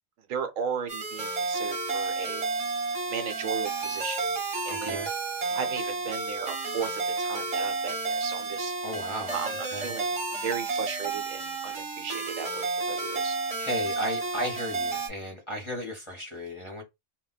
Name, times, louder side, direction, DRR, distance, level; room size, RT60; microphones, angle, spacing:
voice 1, 0.3-2.4 3.1-4.4 4.6-5.0 5.5-8.7 9.3-13.4, right 7 dB, 75° right, 1.0 m, -36 dB
sound 1, 0.9-15.1, right 3 dB, 30° right, 0.9 m, -31 dB
voice 2, 4.7-5.1 8.8-9.9 13.6-16.8, left 1 dB, 25° left, 0.7 m, -35 dB
2.2 x 2.1 x 3.9 m
omnidirectional pair, 1.4 m